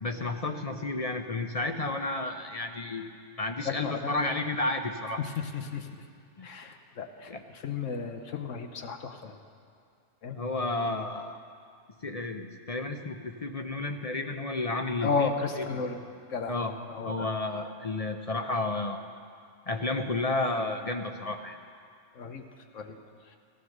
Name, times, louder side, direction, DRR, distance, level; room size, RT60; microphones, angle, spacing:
voice 1, 0.0-3.1 3.4-5.2 6.4-6.5 7.3-7.4 10.4-11.4 12.0-15.3 15.6-15.8 16.5-16.7 17.0-19.1 19.7-21.6, left 2 dB, 40° left, 6 dB, 0.6 m, -31 dB
voice 2, 3.6-4.2 5.2-5.9 6.4-9.4 10.2-10.4 15.0-16.0 16.3-16.5 16.9-17.1 22.1-22.4 22.7-23.0 23.2-23.4, left 5 dB, 75° left, 6 dB, 1.3 m, -33 dB
14.5 x 13.0 x 6.5 m, 2.3 s
omnidirectional pair, 1.3 m